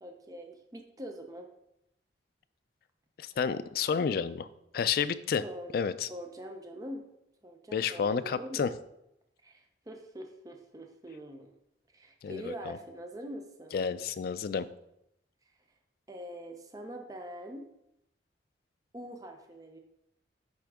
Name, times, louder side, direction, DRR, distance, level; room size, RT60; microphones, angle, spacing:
voice 1, 0.0-1.5 5.4-5.7 6.1-7.0 7.4-8.8 9.4-11.5 11.9-13.7 16.1-17.7 18.9-19.8, equal, 20° right, 3 dB, 0.5 m, -43 dB
voice 2, 3.2-4.5 4.7-5.4 5.7-6.1 7.7-8.7 12.2-12.8 13.7-14.7, left 6 dB, 55° left, 14 dB, 0.3 m, -30 dB
9.7 x 3.6 x 3.5 m, 0.82 s
head